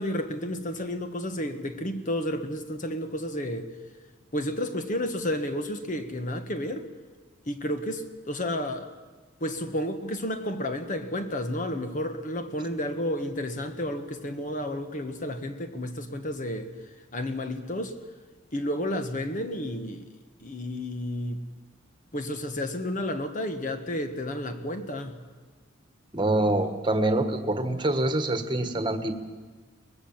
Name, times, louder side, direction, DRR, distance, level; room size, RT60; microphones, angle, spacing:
voice 1, 0.0-3.7 4.3-6.9 7.5-8.9 9.4-16.7 17.1-18.0 18.5-20.1 20.4-21.4 22.1-25.2, left 1 dB, 40° left, 8 dB, 1.4 m, -31 dB
voice 2, 26.1-29.2, right 1 dB, 25° right, 8 dB, 1.5 m, -25 dB
23.5 x 20.5 x 7.4 m, 1.3 s
head